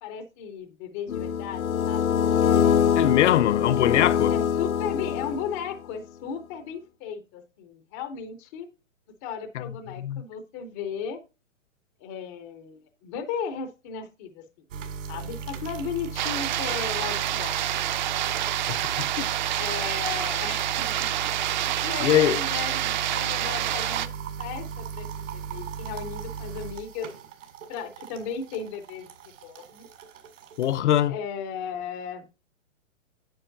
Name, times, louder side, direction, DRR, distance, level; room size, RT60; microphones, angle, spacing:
voice 1, 0.0-2.9 4.3-8.7 9.2-11.2 12.0-14.4 15.1-17.6 19.6-21.0 21.5-24.1 24.4-27.1 27.7-29.1 29.4-29.8 31.1-32.2, left 7 dB, 15° left, 0.4 m, -36 dB
sound 1, 1.1-5.7, left 8 dB, 90° left, 0.9 m, -24 dB
voice 2, 3.0-4.3 9.5-9.6 10.0-10.2 19.2-19.3 22.0-22.4 30.6-31.1, left 12 dB, 60° left, 0.6 m, -22 dB
sound 2, 14.7-30.8, right 6 dB, 65° right, 2.2 m, -37 dB
sound 3, 16.2-24.1, right 12 dB, 35° right, 0.5 m, -28 dB
9.1 x 7.2 x 2.5 m
hypercardioid pair, 145°, 40 cm